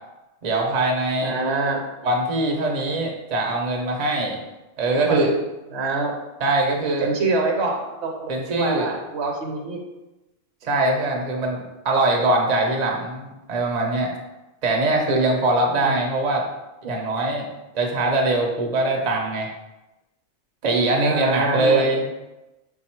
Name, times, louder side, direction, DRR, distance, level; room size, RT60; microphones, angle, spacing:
voice 1, 0.4-1.4 2.0-4.4 4.8-5.3 6.4-7.1 8.3-8.9 10.6-14.1 14.6-16.4 16.8-17.5 17.7-19.5 20.6-22.0, right 2 dB, 40° right, 0 dB, 0.6 m, -22 dB
voice 2, 1.2-1.8 4.9-5.2 5.7-6.2 7.0-9.8 15.8-15.9 21.0-22.0, right 3 dB, 65° right, 1 dB, 1.0 m, -25 dB
4.9 x 2.3 x 4.4 m, 1.0 s
omnidirectional pair, 1.2 m